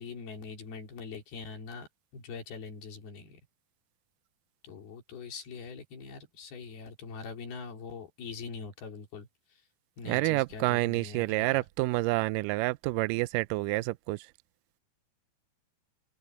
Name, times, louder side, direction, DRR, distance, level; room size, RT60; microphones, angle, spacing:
voice 1, 0.0-1.9 2.1-3.4 4.6-9.3 10.0-11.6, left 5 dB, 90° left, 5.6 m, -43 dB
voice 2, 10.1-14.2, right 21 dB, 85° right, 1.9 m, -28 dB
open air
omnidirectional pair, 4.3 m